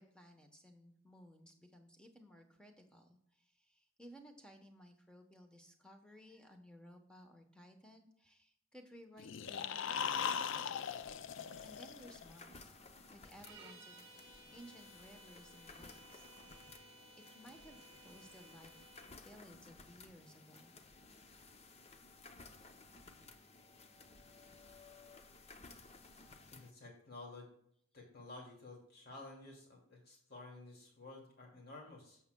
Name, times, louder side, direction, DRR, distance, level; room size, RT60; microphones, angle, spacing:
voice 1, 0.0-11.0 11.6-12.7 13.1-16.3 17.1-18.8 19.2-20.7, equal, 5° left, 4 dB, 1.0 m, -59 dB
sound 1, 9.2-12.3, left 7 dB, 65° left, 0.4 m, -39 dB
sound 2, 10.8-26.7, left 3 dB, 30° left, 0.6 m, -58 dB
sound 3, 13.4-19.2, right 2 dB, 25° right, 1.2 m, -59 dB
voice 2, 26.5-27.5 27.9-32.2, left 2 dB, 50° left, 0 dB, 2.5 m, -52 dB
11.5 x 7.3 x 2.2 m, 0.69 s
head